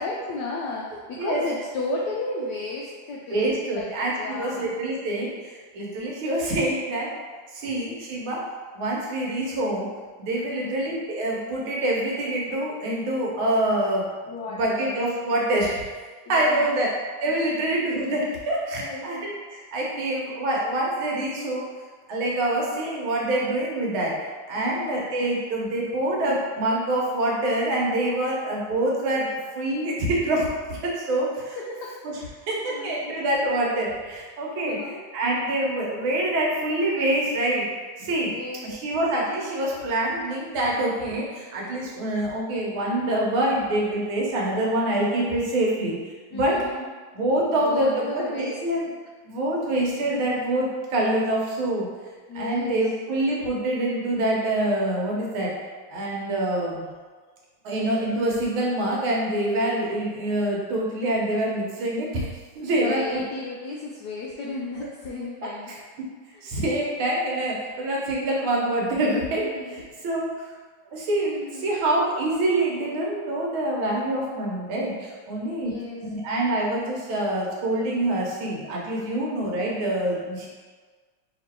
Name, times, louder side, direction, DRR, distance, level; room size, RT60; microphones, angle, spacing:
voice 1, 0.0-3.9 4.2-4.7 7.6-7.8 10.5-10.7 14.3-14.9 16.3-16.8 18.8-19.1 24.6-25.0 31.6-32.4 32.7-33.0 34.6-35.0 38.3-38.7 46.3-46.9 47.5-48.6 52.3-52.8 62.7-65.7 66.3-66.5 69.4-69.9 71.3-71.7 75.6-76.0 79.0-79.3, left 2 dB, 80° left, -3 dB, 0.9 m, -34 dB
voice 2, 3.3-7.1 7.5-8.4 8.8-9.9 10.2-14.1 14.5-15.8 16.3-16.9 17.2-21.7 22.1-24.2 24.5-31.6 32.0-32.1 32.5-37.7 38.0-38.3 38.6-45.9 46.3-46.6 47.1-48.9 49.3-51.9 52.3-55.5 55.9-56.9 57.6-62.3 62.6-63.2 66.4-70.5 70.9-75.7 76.0-80.5, right 1 dB, 75° right, -3 dB, 1.7 m, -26 dB
3.4 x 3.0 x 4.3 m, 1.4 s
omnidirectional pair, 2.3 m